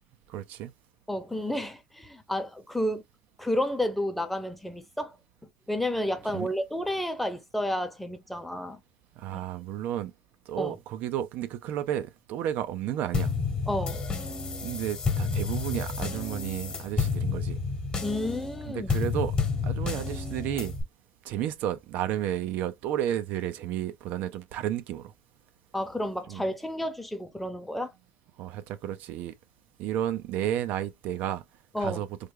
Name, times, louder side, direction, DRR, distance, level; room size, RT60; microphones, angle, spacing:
voice 1, 0.3-0.7 6.3-6.5 9.2-10.1 10.5-13.3 14.6-17.6 18.7-19.4 19.6-20.7 21.2-25.1 26.3-26.4 28.4-29.3 29.8-31.4 31.8-32.1, right 11 dB, 70° right, 0.5 m, -32 dB
voice 2, 1.1-3.0 3.4-5.2 5.7-8.8 9.3-9.4 10.6-10.8 13.7-14.0 18.0-19.1 25.7-27.9 31.7-32.0, left 1 dB, 5° left, 0.8 m, -31 dB
sound 1, 13.1-20.8, left 4 dB, 30° left, 1.1 m, -30 dB
3.2 x 2.2 x 3.5 m
supercardioid pair, 105°, 3 cm